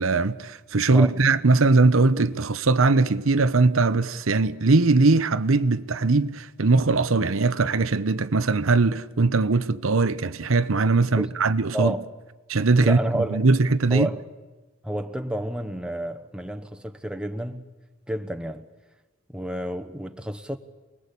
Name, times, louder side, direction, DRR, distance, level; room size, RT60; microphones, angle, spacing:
voice 1, 0.0-11.9 12.5-14.1, right 3 dB, 75° right, 0.9 m, -20 dB
voice 2, 0.9-1.2 11.2-11.3 11.7-12.1 12.8-13.4 13.9-14.2 14.8-17.7 18.1-18.7 19.3-20.6, right 1 dB, 5° right, 1.1 m, -30 dB
28.0 x 19.5 x 8.4 m
head